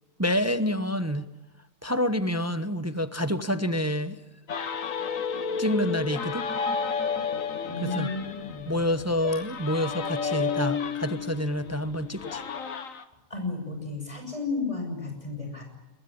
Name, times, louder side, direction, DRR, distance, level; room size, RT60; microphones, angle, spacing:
voice 1, 0.2-1.3 1.8-4.2 5.6-6.5 7.8-8.1 8.6-12.4, equal, 15° right, 11 dB, 0.8 m, -28 dB
sound 1, 4.5-13.0, left 6 dB, 75° left, 1.8 m, -32 dB
voice 2, 7.6-8.7 13.3-15.6, left 3 dB, 25° left, 3 dB, 6.5 m, -33 dB
23.0 x 21.0 x 9.9 m, 1.0 s
omnidirectional pair, 1.4 m